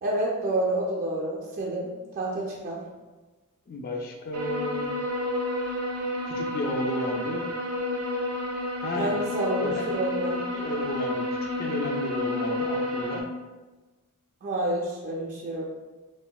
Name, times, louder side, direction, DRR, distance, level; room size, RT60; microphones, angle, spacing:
voice 1, 0.0-2.8 8.9-10.4 14.4-15.7, right 1 dB, 35° right, -4 dB, 0.4 m, -29 dB
voice 2, 3.7-4.9 6.3-7.5 8.8-9.2 9.6-9.9 10.3-11.3 11.6-13.2, left 1 dB, 45° left, 1 dB, 0.4 m, -32 dB
sound 1, 4.3-13.2, left 1 dB, 85° right, 0.5 m, -30 dB
3.6 x 2.1 x 2.2 m, 1.2 s
head